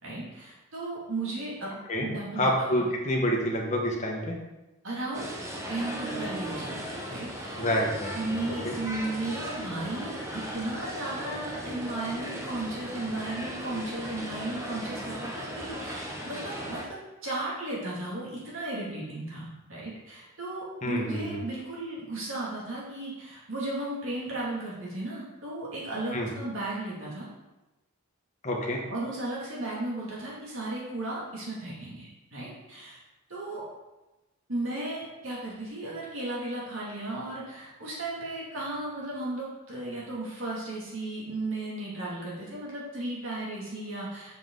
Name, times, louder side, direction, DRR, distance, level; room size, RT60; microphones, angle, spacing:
voice 1, 0.0-2.5 2.8-2.9 4.8-5.4 5.7-6.8 7.1-7.6 8.1-27.3 28.9-33.0 33.3-33.6 34.5-44.4, right 2 dB, 65° right, -5 dB, 2.4 m, -35 dB
voice 2, 1.9-4.4 7.6-8.1 8.6-8.7 20.8-21.4 26.1-26.3 28.4-28.8, equal, 30° left, -1 dB, 1.5 m, -28 dB
sound 1, 5.1-16.8, equal, 15° right, 1.0 m, -37 dB
7.8 x 7.0 x 3.9 m, 1.0 s
head